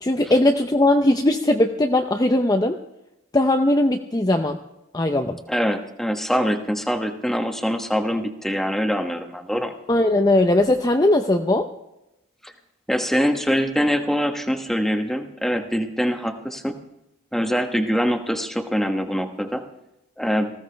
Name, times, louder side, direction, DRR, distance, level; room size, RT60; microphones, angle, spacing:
voice 1, 0.0-2.8 3.3-4.6 4.9-5.4 9.9-11.7, left 1 dB, 20° left, 4 dB, 0.6 m, -19 dB
voice 2, 5.5-9.7 12.4-12.5 12.9-16.8 17.3-19.6 20.2-20.5, equal, ahead, 5 dB, 1.1 m, -24 dB
19.5 x 15.5 x 3.4 m, 0.89 s
head